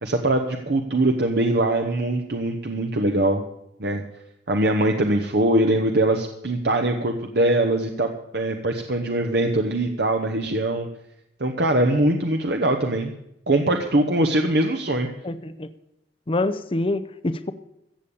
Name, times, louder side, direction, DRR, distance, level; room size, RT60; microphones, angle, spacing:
voice 1, 0.0-3.4 3.8-4.0 4.5-10.9 11.4-13.1 13.5-15.1, right 1 dB, 60° right, 3 dB, 1.0 m, -22 dB
voice 2, 15.2-15.7 16.3-17.5, left 2 dB, 30° left, 12 dB, 0.6 m, -26 dB
15.0 x 7.1 x 8.5 m, 0.81 s
head